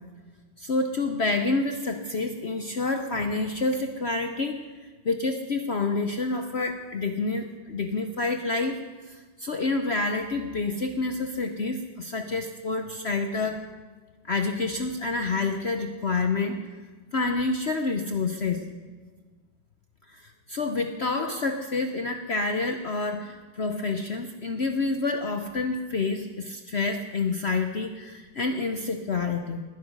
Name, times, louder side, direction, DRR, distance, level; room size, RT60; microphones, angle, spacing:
voice 1, 0.6-8.8 9.1-13.7 14.2-16.6 17.1-18.7 20.1-29.6, left 3 dB, 60° left, 5 dB, 0.7 m, -28 dB
20.0 x 9.6 x 5.3 m, 1.4 s
omnidirectional pair, 2.1 m